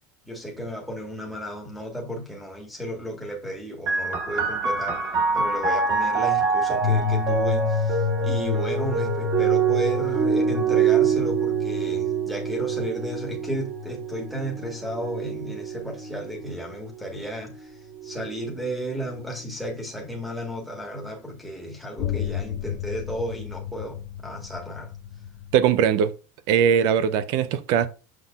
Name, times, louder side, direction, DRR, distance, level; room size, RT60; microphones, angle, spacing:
voice 1, 0.2-5.0 5.3-17.7 18.0-24.9, equal, ahead, 1.5 m, -33 dB
sound 1, 3.9-17.1 18.0-18.7, right 6 dB, 30° right, 1.9 m, -25 dB
sound 2, 6.8-16.1 17.1-17.2 22.0-25.9, left 8 dB, 45° left, 0.6 m, -31 dB
voice 2, 25.5-26.1 26.5-27.9, right 8 dB, 50° right, 0.6 m, -20 dB
7.2 x 6.1 x 2.4 m
cardioid pair, 165°, 8 cm